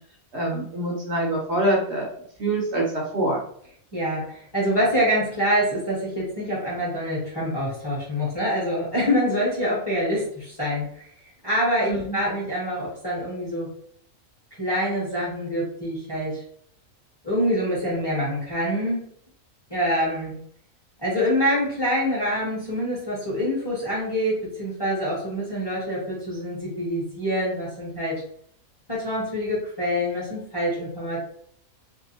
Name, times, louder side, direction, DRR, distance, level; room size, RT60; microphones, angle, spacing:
voice 1, 0.3-3.4 11.8-12.2, right 1 dB, 60° right, -2 dB, 0.8 m, -25 dB
voice 2, 3.9-11.1 11.4-13.7 14.6-16.4 17.2-19.1 19.7-20.4 21.0-28.2 28.9-31.2, equal, 20° left, -6 dB, 0.8 m, -25 dB
2.6 x 2.3 x 2.8 m, 0.64 s
omnidirectional pair, 1.5 m